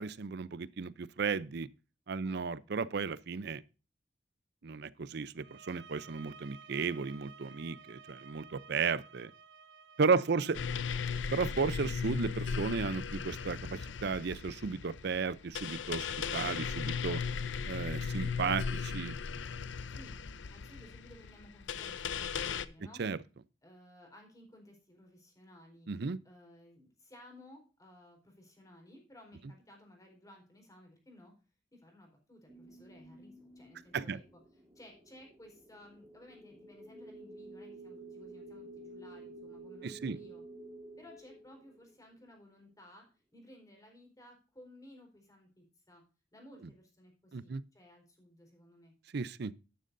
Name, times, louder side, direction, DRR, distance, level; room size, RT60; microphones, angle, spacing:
voice 1, 0.0-1.7 2.1-3.6 4.6-9.3 10.0-10.6 11.3-16.1 16.3-17.2 17.7-19.2 23.0-23.2 25.9-26.2 33.9-34.2 39.8-40.2 47.3-47.6 49.1-49.5, right 5 dB, 60° right, 0.5 m, -34 dB
sound 1, 5.3-10.7, right 5 dB, 80° right, 1.0 m, -55 dB
voice 2, 10.1-10.7 19.9-20.2 20.5-23.0 23.6-25.9 26.2-31.3 31.7-34.4 34.7-40.4 41.0-43.0 43.3-46.0 46.3-48.9, left 1 dB, 20° left, 4.2 m, -57 dB
sound 2, 10.5-22.7, left 6 dB, 80° left, 0.6 m, -37 dB
sound 3, 32.5-42.3, right 2 dB, 20° right, 1.6 m, -51 dB
12.0 x 11.0 x 2.6 m
head